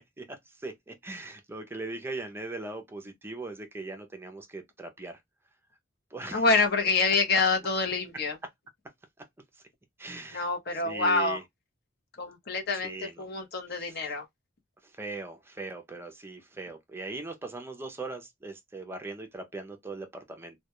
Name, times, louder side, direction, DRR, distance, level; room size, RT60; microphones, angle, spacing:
voice 1, 0.6-5.2 6.1-6.4 10.0-10.5 10.8-11.4 12.8-13.3 13.7-14.0 15.0-20.6, right 2 dB, 10° right, 0.4 m, -39 dB
voice 2, 6.3-8.4 10.3-11.4 12.2-14.2, left 3 dB, 55° left, 0.7 m, -26 dB
2.2 x 2.1 x 2.8 m
head